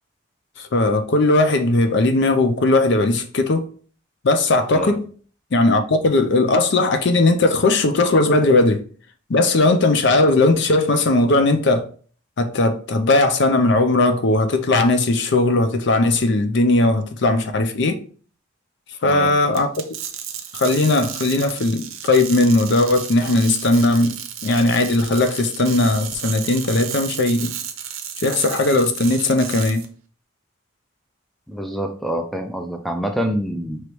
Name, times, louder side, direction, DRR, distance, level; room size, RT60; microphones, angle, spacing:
voice 1, 0.6-3.7 4.2-5.0 5.5-8.8 9.3-11.8 12.4-18.0 19.0-19.7 20.5-24.1 24.4-27.5 28.2-29.8, left 2 dB, 60° left, 0.5 m, -18 dB
sound 1, 19.5-29.8, right 9 dB, 75° right, 0.6 m, -33 dB
voice 2, 31.5-33.8, equal, ahead, 0.3 m, -26 dB
4.8 x 3.0 x 3.0 m
head